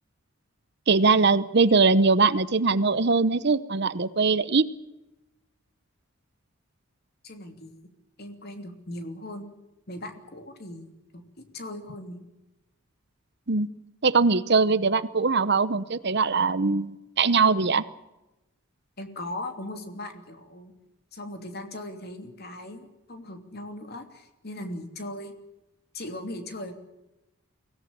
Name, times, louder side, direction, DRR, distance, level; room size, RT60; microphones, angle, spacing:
voice 1, 0.9-4.7 13.5-13.7 14.0-17.8, right 4 dB, 50° right, 15 dB, 0.9 m, -21 dB
voice 2, 7.2-7.9 8.2-9.5 9.9-12.3 19.0-20.7 21.1-25.3 25.9-26.7, left 1 dB, 50° left, 6 dB, 3.0 m, -39 dB
24.0 x 17.0 x 8.8 m, 0.96 s
head